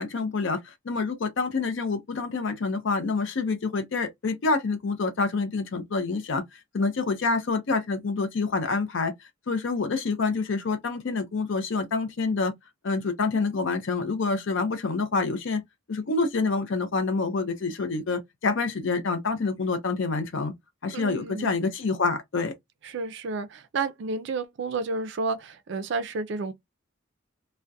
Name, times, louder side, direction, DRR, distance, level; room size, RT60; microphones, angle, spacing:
voice 1, 0.0-6.4 6.7-9.1 9.5-12.5 12.8-15.6 15.9-20.5 20.8-22.5, left 4 dB, 60° left, 0.5 m, -27 dB
voice 2, 20.9-21.6 22.8-26.5, right 3 dB, 55° right, 0.4 m, -31 dB
2.3 x 2.1 x 2.6 m
head